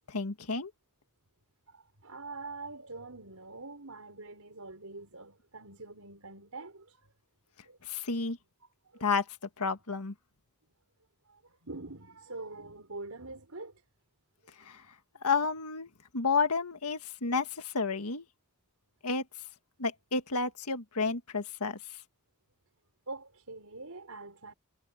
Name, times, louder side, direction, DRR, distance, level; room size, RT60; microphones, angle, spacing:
voice 1, 0.1-0.7 7.8-8.4 9.0-9.3 9.6-10.1 14.6-14.8 15.2-18.3 19.0-19.2 19.8-21.8, left 4 dB, 90° left, 1.7 m, -31 dB
voice 2, 1.7-7.0 7.7-7.8 8.9-9.1 11.3-13.8 23.1-24.5, right 3 dB, 75° right, 5.1 m, -44 dB
head